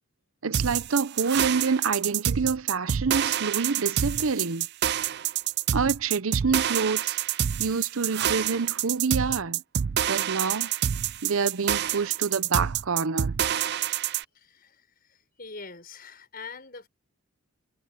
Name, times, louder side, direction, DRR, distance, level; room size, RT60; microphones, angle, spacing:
voice 1, 0.4-4.7 5.7-7.2 7.6-9.6 10.1-10.7 11.2-13.4, right 5 dB, 70° right, 0.7 m, -27 dB
sound 1, 0.5-14.2, right 10 dB, 50° right, 0.4 m, -27 dB
voice 2, 14.3-16.9, left 4 dB, 40° left, 6.0 m, -44 dB
head